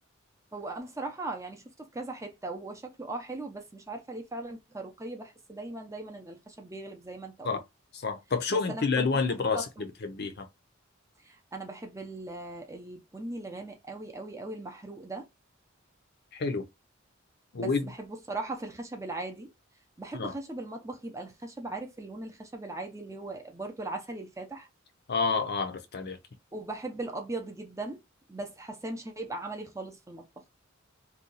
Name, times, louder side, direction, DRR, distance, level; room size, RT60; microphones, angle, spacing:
voice 1, 0.5-7.6 8.5-9.1 9.5-9.9 11.2-15.3 17.6-19.5 20.0-24.7 26.5-28.0 28.3-30.4, right 2 dB, 15° right, 0.6 m, -39 dB
voice 2, 7.9-10.5 16.3-16.6 17.5-17.9 20.1-20.3 25.1-26.2, left 4 dB, 55° left, 0.6 m, -29 dB
2.8 x 2.3 x 3.8 m
head